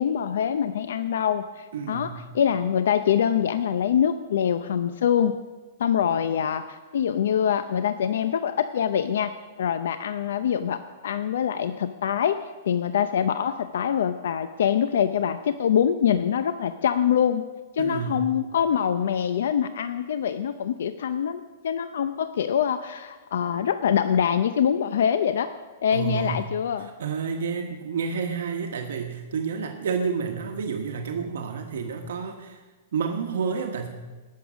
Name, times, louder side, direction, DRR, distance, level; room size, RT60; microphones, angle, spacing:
voice 1, 0.0-5.4 5.8-9.3 9.6-17.5 17.7-25.5 25.8-26.9, left 8 dB, 75° left, 11 dB, 0.5 m, -24 dB
voice 2, 1.7-2.2 17.8-18.2 25.9-26.4 26.8-32.6 32.9-33.9, right 6 dB, 75° right, 3 dB, 1.3 m, -30 dB
17.5 x 6.7 x 6.2 m, 1.3 s
hypercardioid pair, 160°, 0 cm